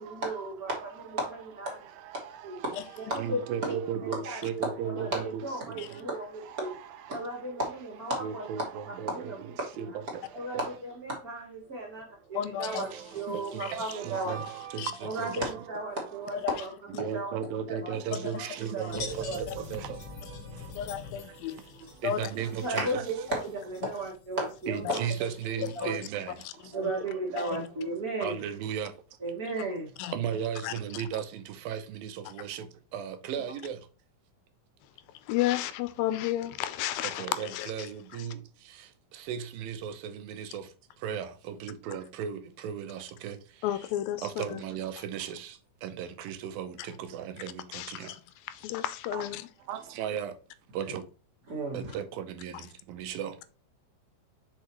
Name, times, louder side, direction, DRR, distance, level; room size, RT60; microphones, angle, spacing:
voice 1, 0.0-1.8 2.4-2.6 3.0-3.8 4.2-6.7 7.1-9.4 9.8-9.9 10.3-12.9 13.1-14.3 15.1-17.4 17.7-17.9 18.2-18.4 18.7-19.4 22.6-25.0 25.6-25.9 26.7-28.4 29.2-29.9 51.5-51.9, right 2 dB, 25° right, 2.5 m, -34 dB
voice 2, 1.7-2.8 3.1-7.6 8.2-10.7 11.7-12.4 12.7-15.6 16.0-16.2 16.9-20.8 21.2-23.3 24.7-27.6 28.2-29.0 30.1-33.9 37.0-43.6 44.2-48.1 49.1-49.3 49.7-50.4 50.7-51.0 51.7-53.4, right 8 dB, 80° right, 2.5 m, -37 dB
voice 3, 12.3-12.9 13.3-13.8 14.8-14.9 16.3-16.6 18.1-18.2 18.5-18.6 19.5-19.6 20.8-21.6 22.0-22.3 24.8-25.0 25.8-25.9 26.4-26.9 27.4-27.7 29.6-29.7 30.0-30.1 30.6-31.0 35.2-38.3 43.6-44.6 46.8-46.9 47.7-48.2 48.5-49.5, left 12 dB, 80° left, 2.4 m, -33 dB
sound 1, 18.9-25.9, left 5 dB, 65° left, 1.3 m, -45 dB
6.5 x 5.4 x 3.0 m
omnidirectional pair, 4.2 m